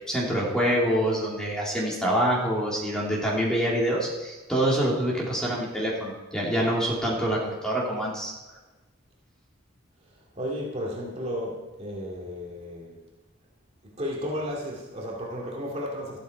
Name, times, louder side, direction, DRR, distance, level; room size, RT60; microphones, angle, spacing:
voice 1, 0.1-8.3, right 1 dB, 5° left, -5 dB, 3.4 m, -26 dB
voice 2, 10.4-13.0 14.0-16.2, equal, 30° right, -3 dB, 2.4 m, -33 dB
13.5 x 13.0 x 4.7 m, 1.2 s
head